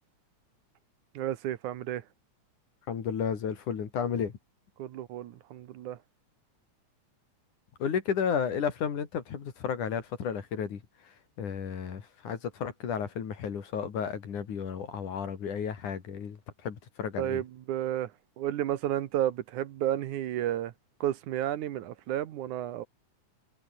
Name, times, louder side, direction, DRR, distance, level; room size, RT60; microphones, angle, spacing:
voice 1, 1.2-2.0 4.8-6.0 17.2-18.1 18.4-20.7 21.0-22.8, right 12 dB, 75° right, 2.6 m, -32 dB
voice 2, 2.9-4.4 7.8-17.4, left 7 dB, 75° left, 4.2 m, -33 dB
omnidirectional pair, 3.5 m